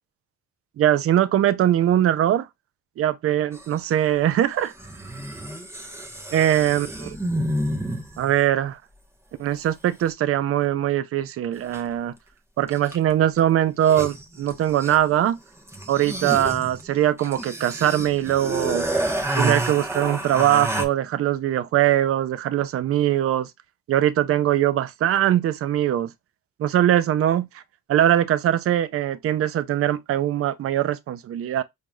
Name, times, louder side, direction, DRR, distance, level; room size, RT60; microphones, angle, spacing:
voice 1, 0.8-2.5 3.0-4.7 6.3-6.9 8.2-8.8 9.4-12.1 12.6-15.4 15.9-18.9 19.4-23.5 23.9-26.1 26.6-27.6 27.9-31.6, right 12 dB, 50° right, 0.5 m, -21 dB
sound 1, 3.5-3.6 4.8-8.3 11.7-11.8 12.7-13.1 13.4-13.5 13.7-15.1 15.7-20.9, right 1 dB, 10° right, 1.0 m, -29 dB
4.6 x 2.8 x 2.3 m
cardioid pair, 90°, 30 cm